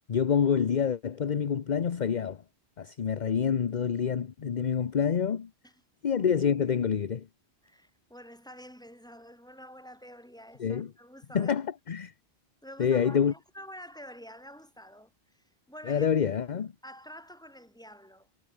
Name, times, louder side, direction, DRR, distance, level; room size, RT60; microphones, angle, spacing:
voice 1, 0.1-2.4 2.8-5.5 6.0-7.3 10.6-10.9 11.3-12.1 12.8-13.3 15.9-16.7, left 7 dB, 45° left, 0.9 m, -27 dB
voice 2, 7.6-11.6 12.6-16.1 16.4-16.5 16.8-18.3, equal, 5° left, 4.9 m, -48 dB
omnidirectional pair, 1.1 m